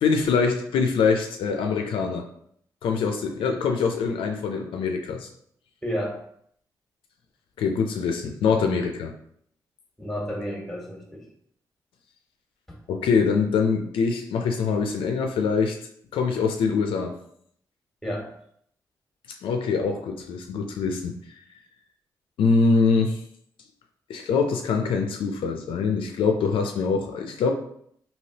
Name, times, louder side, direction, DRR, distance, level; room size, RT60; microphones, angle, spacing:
voice 1, 0.0-2.3 2.8-5.3 7.6-9.1 12.9-15.8 16.1-17.2 19.4-21.1 22.4-23.2 24.1-27.5, left 5 dB, 80° left, 4 dB, 0.4 m, -24 dB
voice 2, 5.8-6.2 10.0-11.2 18.0-18.3, equal, 5° left, 0 dB, 1.3 m, -31 dB
3.2 x 2.7 x 2.8 m, 0.67 s
supercardioid pair, 45°, 9 cm